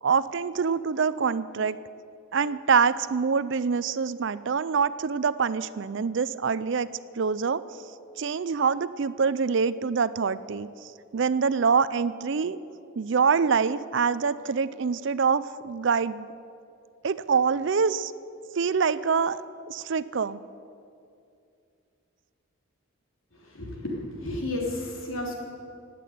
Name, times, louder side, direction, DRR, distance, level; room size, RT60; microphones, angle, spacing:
voice 1, 0.0-1.8 2.3-6.9 7.2-7.6 8.2-10.7 11.1-12.6 13.0-16.3 17.0-18.1 18.5-19.4 19.7-20.4, right 5 dB, 55° right, 16 dB, 0.4 m, -25 dB
voice 2, 23.3-25.3, left 1 dB, 65° left, -1 dB, 3.5 m, -32 dB
18.0 x 8.5 x 9.4 m, 2.5 s
head